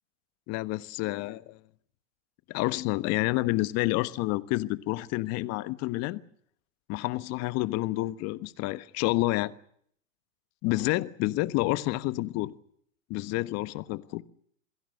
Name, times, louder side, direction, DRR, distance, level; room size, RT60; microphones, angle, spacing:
voice 1, 0.5-1.6 2.5-6.2 6.9-9.5 10.6-12.5 13.1-14.2, left 19 dB, 40° left, 1.4 m, -29 dB
28.0 x 21.5 x 6.6 m
hypercardioid pair, 110°, 39 cm